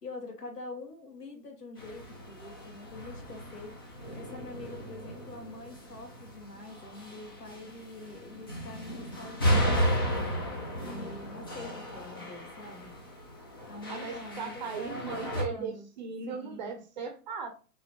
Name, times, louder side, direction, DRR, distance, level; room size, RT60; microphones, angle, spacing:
voice 1, 0.0-3.7 4.1-10.2 10.8-12.9 13.7-15.9 16.3-16.7, left 2 dB, 75° left, 1 dB, 2.5 m, -45 dB
sound 1, 1.8-15.4, equal, 15° left, 0.4 m, -34 dB
voice 2, 13.9-17.5, right 5 dB, 30° right, 5 dB, 0.7 m, -37 dB
5.1 x 3.4 x 3.0 m, 0.34 s
figure-of-eight pair, 130°, 48 cm